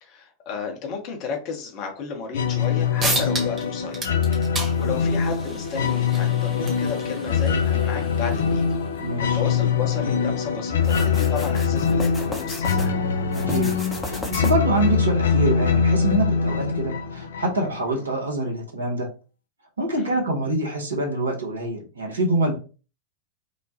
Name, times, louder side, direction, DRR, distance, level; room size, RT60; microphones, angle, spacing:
voice 1, 0.0-4.1 4.8-8.8 9.3-13.0 20.0-20.2, left 5 dB, 40° left, 2 dB, 0.8 m, -33 dB
sound 1, 2.3-17.8, left 6 dB, 65° left, 0.3 m, -23 dB
sound 2, 2.6-2.7 3.0-3.6 3.9-9.1, right 2 dB, 25° right, 1.1 m, -32 dB
voice 2, 9.0-9.4 13.4-13.7 14.0-19.1 19.8-22.6, right 2 dB, 75° right, 1 dB, 0.9 m, -25 dB
sound 3, 10.8-12.9 13.3-14.8, left 1 dB, 10° left, 0.7 m, -35 dB
2.9 x 2.1 x 2.7 m, 0.35 s
figure-of-eight pair, 90°, 0 cm